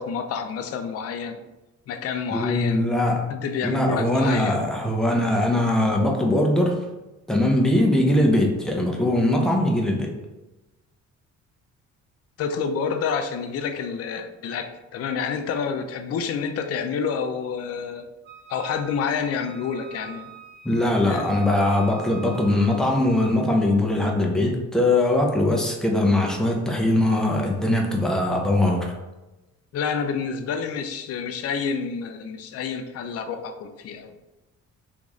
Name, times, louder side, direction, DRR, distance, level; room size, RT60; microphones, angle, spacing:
voice 1, 0.0-1.4 1.9-2.8 3.3-4.6 12.4-18.0 18.5-20.3 21.1-21.3 29.7-34.2, left 6 dB, 55° left, 8 dB, 0.4 m, -28 dB
voice 2, 2.3-3.3 3.6-6.8 7.3-10.1 20.6-28.9, left 1 dB, ahead, 0 dB, 0.6 m, -21 dB
Wind instrument woodwind instrument, 18.2-23.0, right 8 dB, 35° right, 0.7 m, -43 dB
3.0 x 2.7 x 3.6 m, 1.1 s
cardioid pair, 90°, 30 cm